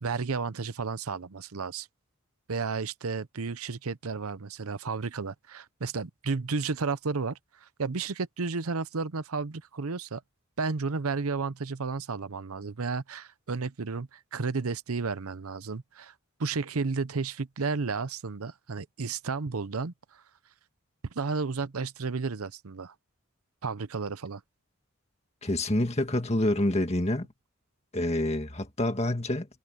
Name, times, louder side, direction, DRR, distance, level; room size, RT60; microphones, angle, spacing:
voice 1, 0.0-1.9 2.5-10.2 10.6-16.1 16.4-20.2 21.1-22.9 23.6-24.4, right 4 dB, 90° right, 0.8 m, -32 dB
voice 2, 25.4-27.3 27.9-29.5, left 1 dB, 30° left, 1.9 m, -27 dB
head